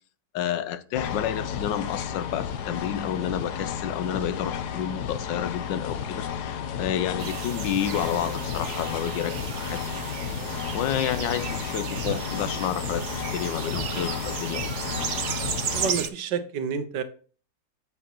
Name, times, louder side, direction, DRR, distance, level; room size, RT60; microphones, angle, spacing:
voice 1, 0.3-9.8 10.7-13.0 13.3-14.7, left 10 dB, 90° left, 1.4 m, -30 dB
sound 1, 0.9-15.9, left 8 dB, 70° left, 1.4 m, -32 dB
sound 2, 7.2-16.1, right 8 dB, 60° right, 0.8 m, -34 dB
voice 2, 15.7-17.0, right 6 dB, 80° right, 1.6 m, -29 dB
8.1 x 7.7 x 3.0 m
omnidirectional pair, 1.9 m